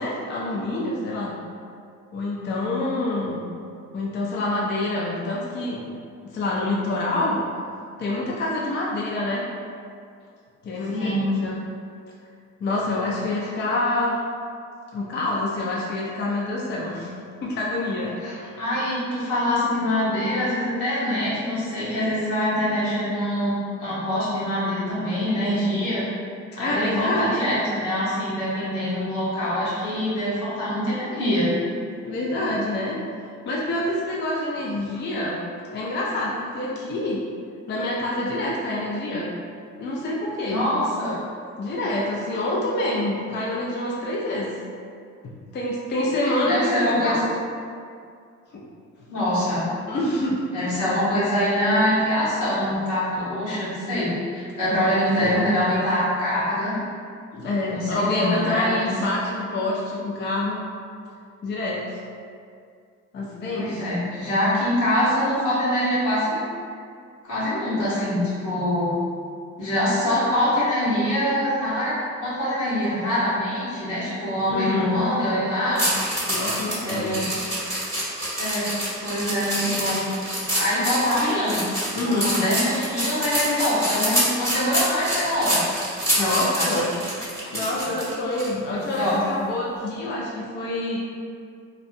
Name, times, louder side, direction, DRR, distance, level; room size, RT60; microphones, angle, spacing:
voice 1, 0.0-1.4 2.1-3.4 3.9-5.8 6.3-7.5 8.0-9.4 10.6-11.6 12.6-14.2 14.9-17.1 17.4-18.5 26.6-27.5 32.0-33.0 33.5-35.4 35.7-37.2 37.7-39.4 39.8-40.6 41.6-44.5 45.2-47.2 48.5-48.6 49.9-50.4 54.7-55.4 57.3-60.6 61.4-62.0 63.1-63.8 74.5-75.1 76.3-77.1 82.0-82.4 86.2-86.9 87.5-91.0, left 2 dB, 35° left, -4 dB, 0.4 m, -27 dB
voice 2, 10.9-11.3 18.2-26.1 26.6-31.5 40.5-41.1 46.2-47.2 49.1-49.6 50.5-56.8 57.7-58.9 63.5-66.4 67.2-68.9 69.6-71.9 72.2-75.8 76.8-77.2 78.4-78.7 79.0-80.0 80.5-81.6 82.0-85.6 86.2-86.7 87.8-87.9 88.9-89.1, left 1 dB, 80° left, -10 dB, 1.1 m, -24 dB
sound 1, 75.8-88.5 88.9-89.1, right 1 dB, 10° left, 0.9 m, -26 dB
2.6 x 2.0 x 2.5 m, 2.2 s
cardioid pair, 90°, 30 cm